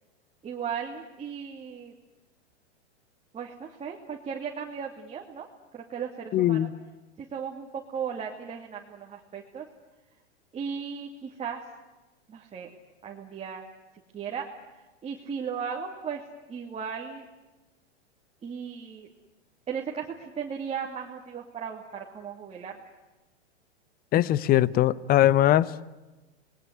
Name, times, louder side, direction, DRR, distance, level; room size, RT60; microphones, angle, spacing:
voice 1, 0.4-1.9 3.3-5.5 5.7-6.7 7.2-9.7 10.5-11.6 12.3-12.7 13.0-13.6 14.1-14.5 14.8-16.2 16.5-17.2 18.4-19.1 19.7-22.8, right 7 dB, 20° right, -1 dB, 2.7 m, -36 dB
voice 2, 6.3-6.7 24.1-25.7, left 13 dB, 25° left, 21 dB, 0.9 m, -21 dB
27.0 x 21.0 x 9.5 m, 1.1 s
hypercardioid pair, 125°, 34 cm